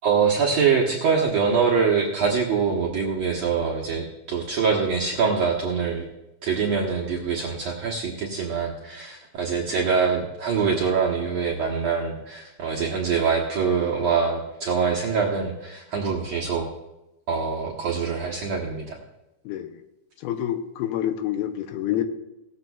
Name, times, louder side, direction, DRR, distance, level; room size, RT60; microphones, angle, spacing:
voice 1, 0.0-6.1 6.4-16.7 17.3-19.0, right 5 dB, 65° right, -3 dB, 1.7 m, -24 dB
voice 2, 20.2-22.0, left 11 dB, 80° left, 7 dB, 2.7 m, -27 dB
17.5 x 13.5 x 2.4 m, 0.96 s
omnidirectional pair, 4.6 m